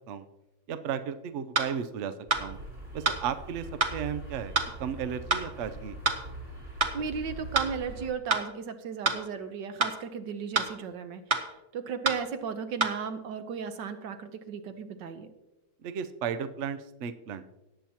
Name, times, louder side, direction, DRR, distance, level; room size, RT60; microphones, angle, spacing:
voice 1, 0.7-2.1 2.4-2.6 2.9-3.7 3.9-6.0 15.8-17.4, right 8 dB, 90° right, 10 dB, 0.6 m, -34 dB
sound 1, 1.6-1.7 2.3-2.5 3.1-3.2 3.8-4.0 4.6-4.7 5.3-5.5 6.1-6.2 6.8-7.0 7.6-7.7 8.3-8.5 9.1-9.2 9.8-10.0 10.6-10.7 11.3-11.5 12.1-12.2 12.8-12.9, right 4 dB, 45° right, 1.0 m, -26 dB
sound 2, 2.3-8.1, right 1 dB, 30° right, 3.2 m, -43 dB
voice 2, 6.9-15.3, right 6 dB, 70° right, 9 dB, 1.5 m, -35 dB
18.5 x 7.8 x 2.9 m, 0.98 s
omnidirectional pair, 2.1 m